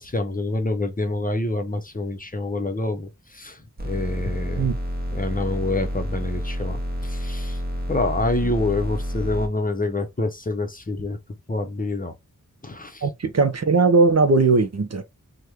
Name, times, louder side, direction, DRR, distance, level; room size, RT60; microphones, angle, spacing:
voice 1, 0.0-3.6 3.8-4.7 5.1-7.6 7.9-11.2 11.5-12.1 12.6-13.0, left 2 dB, 25° left, 0.7 m, -27 dB
sound 1, 3.8-9.5, equal, 30° right, 0.9 m, -29 dB
voice 2, 13.0-15.0, right 3 dB, 50° right, 0.6 m, -19 dB
3.5 x 2.2 x 2.9 m
wide cardioid pair, 50°, 33 cm